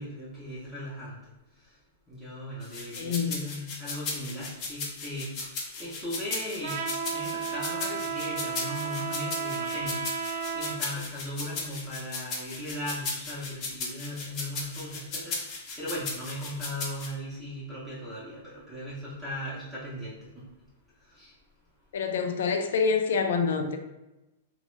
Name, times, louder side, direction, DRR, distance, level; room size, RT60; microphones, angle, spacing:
voice 1, 0.0-1.8 2.1-20.4 21.0-21.3, left 1 dB, ahead, 0.7 m, -38 dB
sound 1, 2.6-17.1, left 3 dB, 30° left, 0.6 m, -36 dB
voice 2, 3.0-3.3 21.9-23.8, left 5 dB, 75° left, 0.4 m, -26 dB
Trumpet, 6.6-10.8, right 6 dB, 70° right, 0.3 m, -33 dB
2.8 x 2.1 x 3.1 m
hypercardioid pair, 155°, 0 cm